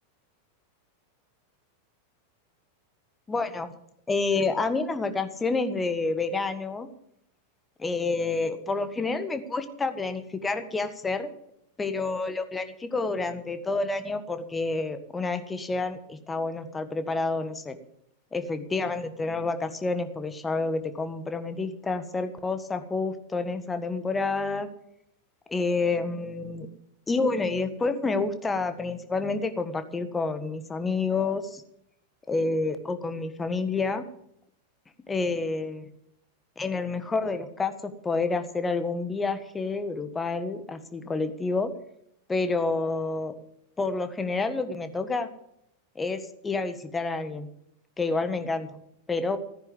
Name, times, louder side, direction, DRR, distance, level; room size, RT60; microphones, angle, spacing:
voice 1, 3.3-3.7 4.1-6.9 7.8-11.3 11.8-17.8 18.3-24.7 25.5-26.7 27.1-31.6 32.3-34.0 35.1-35.8 36.6-41.7 42.3-43.3 43.8-45.3 45.9-47.5 48.0-48.8 49.1-49.4, left 3 dB, 15° left, 9 dB, 1.5 m, -29 dB
15.0 x 10.0 x 7.3 m, 0.75 s
figure-of-eight pair, 90°, 0 cm